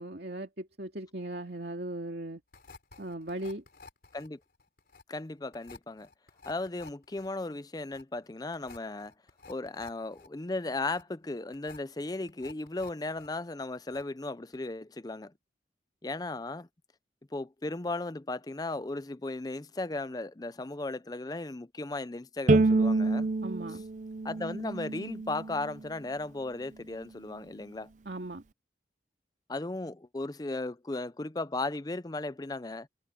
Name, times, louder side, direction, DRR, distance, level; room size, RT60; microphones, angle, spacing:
voice 1, 0.0-2.4 3.0-3.6 23.4-23.8 28.1-28.4, right 1 dB, 65° right, 2.3 m, -38 dB
sound 1, 2.5-13.3 13.6-14.3 14.5-14.7, left 4 dB, 55° left, 3.6 m, -53 dB
voice 2, 5.1-6.1 6.5-9.1 9.5-15.3 16.0-16.7 17.3-23.3 24.2-27.9 29.5-32.9, left 2 dB, 20° left, 0.5 m, -36 dB
Bowed string instrument, 22.5-25.7, right 3 dB, 45° right, 0.6 m, -27 dB
head